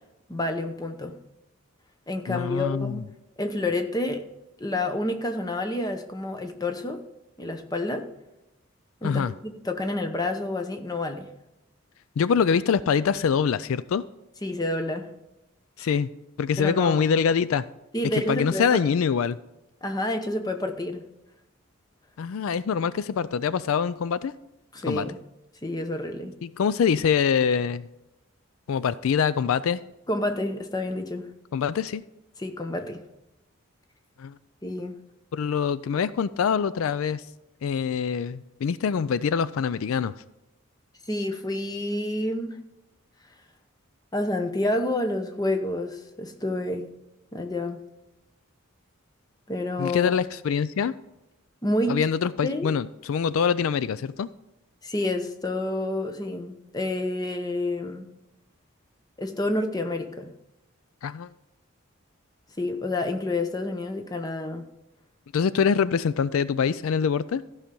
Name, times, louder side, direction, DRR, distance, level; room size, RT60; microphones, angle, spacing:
voice 1, 0.3-1.2 2.1-3.1 3.4-4.3 4.6-7.0 7.4-8.1 9.0-11.3 14.4-15.1 15.8-15.9 16.6-17.2 17.9-18.7 19.8-21.0 24.7-25.2 25.6-26.3 30.1-31.3 32.4-33.0 34.6-35.0 41.1-42.7 44.1-46.9 47.3-47.8 49.5-50.1 51.6-52.0 52.4-52.7 54.8-58.1 59.2-60.3 62.6-64.6, left 1 dB, 20° left, 6 dB, 0.8 m, -29 dB
voice 2, 2.3-3.0 9.0-9.3 12.2-14.0 15.8-16.1 16.4-17.6 18.3-19.4 22.2-24.3 24.9-25.1 26.4-27.9 28.7-29.8 31.5-32.0 34.2-34.4 35.3-37.2 37.6-40.1 49.8-50.9 51.9-54.3 61.0-61.3 65.3-67.4, left 6 dB, 75° left, 16 dB, 0.4 m, -24 dB
14.0 x 5.7 x 5.3 m, 0.91 s
head